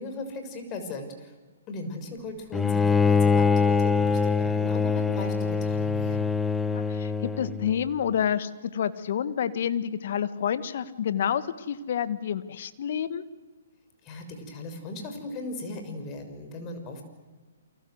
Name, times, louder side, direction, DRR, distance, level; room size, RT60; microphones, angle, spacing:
voice 1, 0.0-1.3 1.7-6.3 14.0-17.0, left 2 dB, 25° left, 6 dB, 6.5 m, -37 dB
Bowed string instrument, 2.5-7.7, left 5 dB, 5° left, 0.9 m, -24 dB
voice 2, 6.6-13.2, left 8 dB, 55° left, 13 dB, 1.8 m, -29 dB
29.5 x 24.5 x 8.1 m, 1.3 s
figure-of-eight pair, 130°, 0 cm